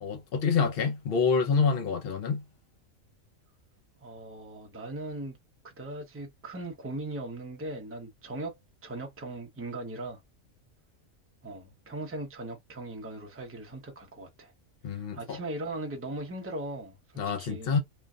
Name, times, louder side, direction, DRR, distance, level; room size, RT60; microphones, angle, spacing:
voice 1, 0.0-2.4 14.8-15.4 17.2-17.8, left 5 dB, 50° left, 0.9 m, -27 dB
voice 2, 4.0-5.4 5.8-8.5 8.8-10.2 11.4-14.5 14.9-17.8, right 2 dB, 15° right, 0.6 m, -39 dB
3.2 x 2.2 x 2.4 m
omnidirectional pair, 1.4 m